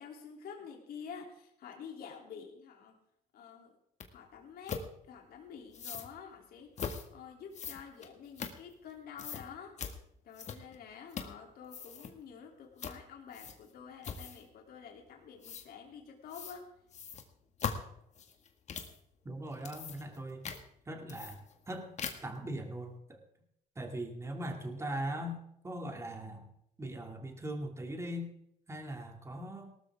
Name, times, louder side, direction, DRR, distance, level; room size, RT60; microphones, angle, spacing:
voice 1, 0.0-2.9 3.3-3.7 4.1-6.8 7.1-9.7 10.2-16.7, left 7 dB, 65° left, 1 dB, 3.1 m, -49 dB
sound 1, 4.0-4.1 4.7-4.9 5.7-6.1 6.8-7.1 7.5-8.9 9.2-9.4 9.8-10.0 10.3-10.8 11.1-11.4 11.7-12.1 12.8-13.0 13.3-13.7 14.0-14.5 15.4-15.7 16.3-16.6 16.9-19.0 19.5-20.2 20.4-20.6 21.1-21.7 22.0-22.4, left 6 dB, 45° left, 1.9 m, -41 dB
voice 2, 19.2-20.5 20.9-21.4 21.7-21.9 22.2-23.2 23.8-26.5 26.8-28.3 28.7-29.7, right 1 dB, 15° right, 3 dB, 2.6 m, -40 dB
18.5 x 13.5 x 3.7 m, 0.74 s
cardioid pair, 110°, 17 cm